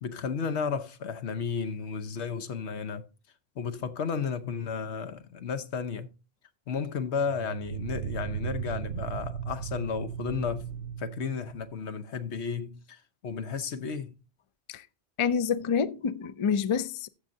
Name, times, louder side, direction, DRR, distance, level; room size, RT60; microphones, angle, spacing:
voice 1, 0.0-3.1 3.6-6.1 6.7-10.6 11.0-14.2, left 6 dB, 80° left, 1.2 m, -33 dB
sound 1, 1.8-1.9 7.2-11.7, right 9 dB, 80° right, 0.9 m, -36 dB
voice 2, 15.2-17.1, left 6 dB, 45° left, 0.4 m, -27 dB
14.5 x 6.4 x 2.7 m
omnidirectional pair, 1.1 m